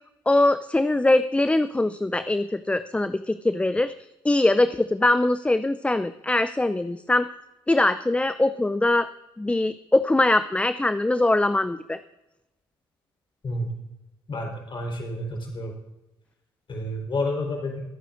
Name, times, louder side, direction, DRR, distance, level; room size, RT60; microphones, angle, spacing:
voice 1, 0.3-3.9 4.2-7.2 7.7-9.1 9.4-12.0, left 2 dB, 10° left, 12 dB, 0.4 m, -22 dB
voice 2, 14.3-15.7 16.7-17.8, left 1 dB, 45° left, 1 dB, 4.1 m, -30 dB
22.5 x 9.1 x 2.6 m, 0.94 s
hypercardioid pair, 50°, 12 cm